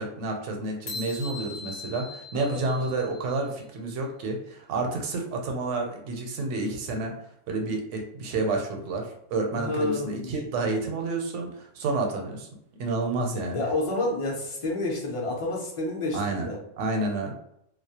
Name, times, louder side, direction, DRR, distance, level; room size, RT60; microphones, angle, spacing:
voice 1, 0.0-7.2 7.5-12.5 12.8-13.6 16.1-16.5 16.8-17.3, right 3 dB, 80° right, 2 dB, 0.9 m, -29 dB
sound 1, 0.9-3.5, left 3 dB, 65° left, 0.8 m, -40 dB
voice 2, 9.6-10.4 13.5-16.6, left 2 dB, 40° left, -2 dB, 0.5 m, -29 dB
2.3 x 2.0 x 2.8 m, 0.75 s
omnidirectional pair, 1.2 m